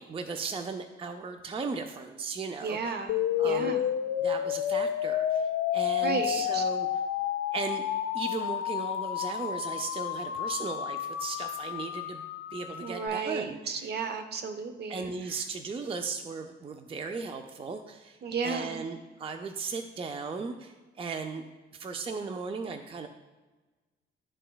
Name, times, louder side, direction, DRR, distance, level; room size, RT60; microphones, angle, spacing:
voice 1, 0.0-3.0 3.4-3.8 4.2-6.9 7.5-7.8 8.1-12.3 12.5-13.9 14.9-21.4 21.7-23.1, right 4 dB, 30° right, 6 dB, 0.4 m, -37 dB
voice 2, 2.6-3.9 6.0-6.6 12.8-15.1 18.2-18.8, right 5 dB, 55° right, 8 dB, 0.7 m, -34 dB
sound 1, 3.1-13.1, left 10 dB, 70° left, 0.4 m, -30 dB
11.0 x 3.8 x 2.3 m, 1.2 s
cardioid pair, 90°, 20 cm